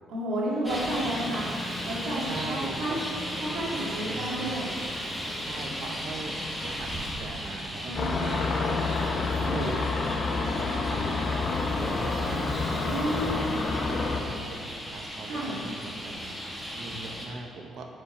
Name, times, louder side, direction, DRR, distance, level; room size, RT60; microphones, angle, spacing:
voice 1, 0.1-3.1 3.4-4.7 7.8-8.3 9.3-9.7 12.8-13.4 15.2-15.6, right 1 dB, 85° right, -5 dB, 2.0 m, -32 dB
Traffic noise roadway noise, 0.6-17.3, equal, 5° right, 1.7 m, -36 dB
voice 2, 2.2-3.0 5.4-7.9 8.2-8.8 9.4-9.8 10.3-11.3 11.7-12.6 13.1-13.5 13.9-17.9, right 3 dB, 70° right, 2 dB, 1.0 m, -40 dB
sound 1, 7.9-14.2, left 3 dB, 55° left, 0.9 m, -28 dB
8.2 x 5.6 x 5.0 m, 2.3 s
cardioid pair, 90°, 0 cm